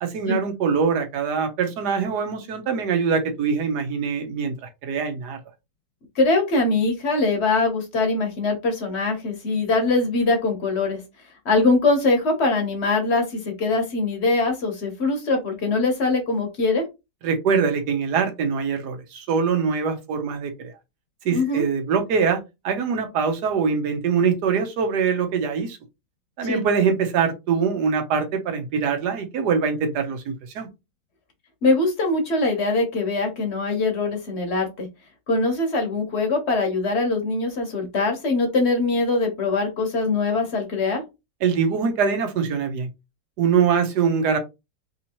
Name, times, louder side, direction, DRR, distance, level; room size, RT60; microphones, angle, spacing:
voice 1, 0.0-5.4 17.2-20.7 21.2-25.8 26.4-30.7 41.4-42.9 43.4-44.4, right 6 dB, 70° right, 1.3 m, -23 dB
voice 2, 6.1-11.0 11.4-16.9 21.3-21.6 26.4-26.6 31.6-34.9 35.3-41.0, left 3 dB, 45° left, 1.0 m, -22 dB
3.5 x 2.8 x 2.8 m
omnidirectional pair, 1.8 m